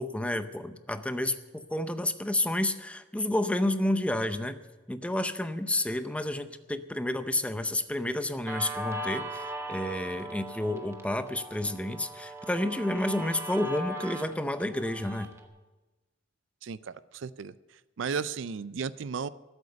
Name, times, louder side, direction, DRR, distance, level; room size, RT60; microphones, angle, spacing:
voice 1, 0.0-4.6 4.9-15.3, left 1 dB, 5° left, 10 dB, 0.6 m, -30 dB
Guitar, 8.5-15.5, right 1 dB, 15° right, 1.1 m, -39 dB
voice 2, 16.6-17.5 18.0-19.3, right 5 dB, 70° right, 17 dB, 0.4 m, -34 dB
13.5 x 8.0 x 8.6 m, 1.2 s
head